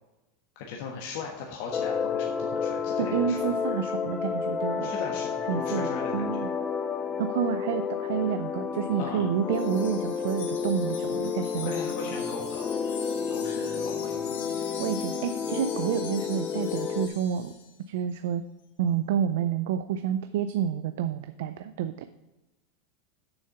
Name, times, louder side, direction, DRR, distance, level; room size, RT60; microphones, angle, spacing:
voice 1, 0.5-3.5 4.8-6.4 9.0-9.3 11.5-12.7 13.3-14.4, left 5 dB, 60° left, -1 dB, 1.3 m, -38 dB
sound 1, 1.7-17.1, left 6 dB, 20° left, 0.5 m, -31 dB
voice 2, 3.0-5.0 5.5-6.5 7.2-11.8 14.8-17.5 17.9-18.4 18.8-22.1, right 9 dB, 75° right, 10 dB, 0.4 m, -29 dB
Wind chime, 9.5-17.7, left 6 dB, 85° left, 2.2 m, -43 dB
7.0 x 6.5 x 5.7 m, 1.1 s
supercardioid pair, 135°, 0 cm